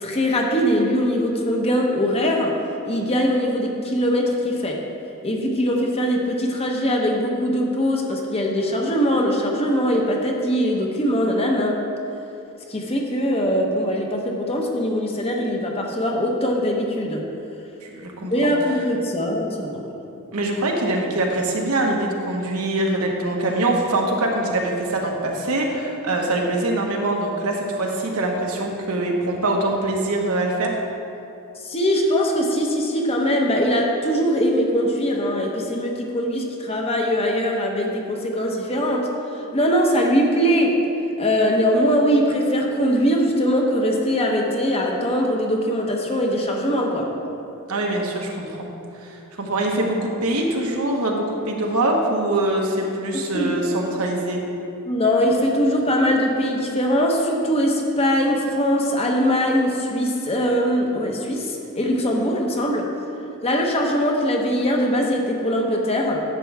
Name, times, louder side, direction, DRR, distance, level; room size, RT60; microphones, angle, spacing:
voice 1, 0.0-2.6 2.8-4.8 5.2-11.8 12.7-17.3 18.3-19.9 31.6-40.8 41.2-47.1 53.1-53.5 54.8-62.9 63.4-66.2, equal, 25° left, 1 dB, 0.9 m, -21 dB
voice 2, 17.8-18.5 20.3-30.7 47.7-48.7 49.0-54.4, right 2 dB, 80° right, 0 dB, 1.3 m, -23 dB
11.0 x 7.6 x 3.5 m, 2.8 s
head